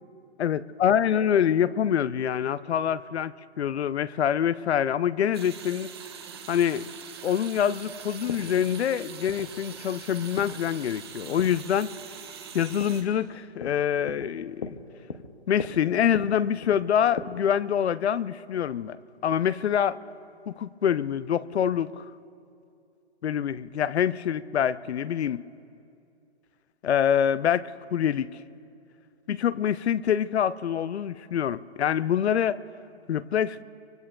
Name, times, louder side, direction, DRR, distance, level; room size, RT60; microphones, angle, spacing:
voice 1, 0.4-5.9 6.5-6.9 7.2-11.9 12.5-14.8 15.5-19.0 19.2-20.0 20.5-22.1 23.2-25.4 26.8-28.4 29.3-32.6 33.1-33.6, left 9 dB, 80° left, 0.6 m, -25 dB
sound 1, 5.3-13.0, right 7 dB, 25° right, 0.8 m, -43 dB
sound 2, 6.2-17.2, left 5 dB, 30° left, 0.6 m, -41 dB
24.5 x 24.0 x 2.2 m
hypercardioid pair, 175°, 32 cm